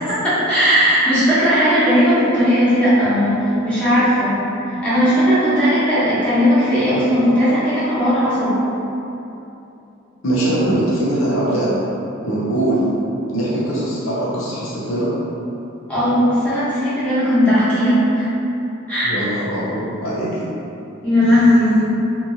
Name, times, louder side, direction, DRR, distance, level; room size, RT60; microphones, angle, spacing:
voice 1, 0.2-4.4 4.6-8.6 15.9-18.3 18.9-19.1 21.0-21.8, equal, 5° left, -14 dB, 1.0 m, -16 dB
voice 2, 10.2-11.8 12.2-12.9 13.3-15.1 19.0-20.5, right 1 dB, 85° left, -8 dB, 0.7 m, -21 dB
2.8 x 2.6 x 2.7 m, 2.9 s
head